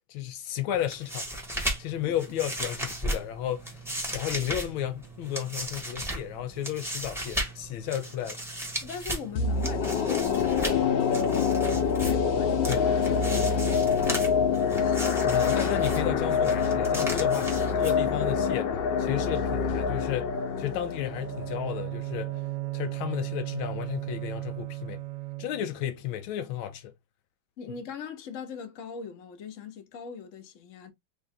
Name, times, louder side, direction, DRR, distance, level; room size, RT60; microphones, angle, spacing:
voice 1, 0.1-1.4 1.8-3.8 4.1-8.4 12.7-12.9 15.2-22.4 22.7-25.0 25.4-26.9, left 11 dB, 85° left, 1.5 m, -33 dB
sound 1, 0.7-18.4, right 1 dB, ahead, 0.9 m, -36 dB
voice 2, 8.8-15.2 27.6-30.9, left 7 dB, 50° left, 1.1 m, -41 dB
sound 2, 9.4-22.4 22.8-22.9, left 6 dB, 65° left, 1.4 m, -26 dB
Bowed string instrument, 21.0-25.8, right 23 dB, 70° right, 1.1 m, -35 dB
3.6 x 3.1 x 3.5 m
omnidirectional pair, 2.2 m